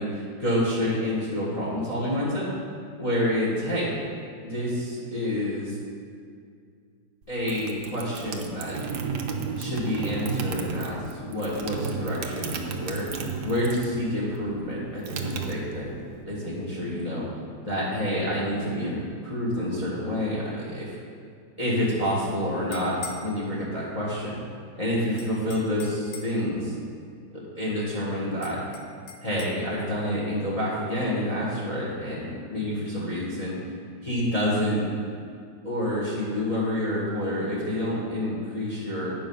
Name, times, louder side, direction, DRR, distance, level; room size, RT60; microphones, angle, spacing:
voice 1, 0.0-2.4 3.0-3.9 4.4-5.8 7.3-8.8 9.5-15.9 16.2-17.3 17.6-20.9 21.6-24.4 24.7-26.7 27.3-28.6 29.2-33.5 34.0-34.8 35.6-39.1, left 1 dB, 20° left, -6 dB, 1.4 m, -28 dB
sound 1, 7.2-14.0 14.3-16.1, right 5 dB, 65° right, 1.2 m, -33 dB
sound 2, 22.5-23.3 25.2-26.4 28.4-29.6, left 5 dB, 70° left, 1.3 m, -42 dB
9.0 x 5.5 x 5.4 m, 2.3 s
omnidirectional pair, 2.1 m